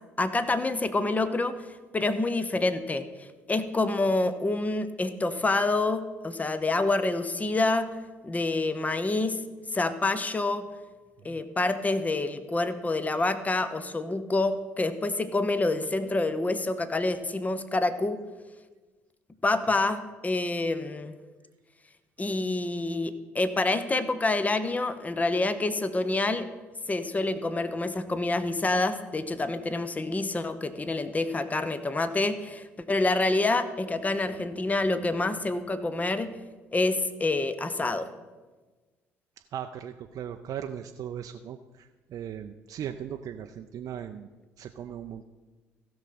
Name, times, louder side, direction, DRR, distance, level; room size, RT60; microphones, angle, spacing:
voice 1, 0.2-1.5 1.9-7.9 8.2-9.4 9.7-10.7 11.2-18.2 19.4-21.1 22.2-26.5 26.9-36.3 36.7-38.1, left 2 dB, 20° left, 11 dB, 0.9 m, -27 dB
voice 2, 39.4-44.3 44.6-45.3, right 9 dB, 50° right, 6 dB, 0.5 m, -38 dB
16.0 x 6.3 x 4.3 m, 1.3 s
hypercardioid pair, 55°, 7 cm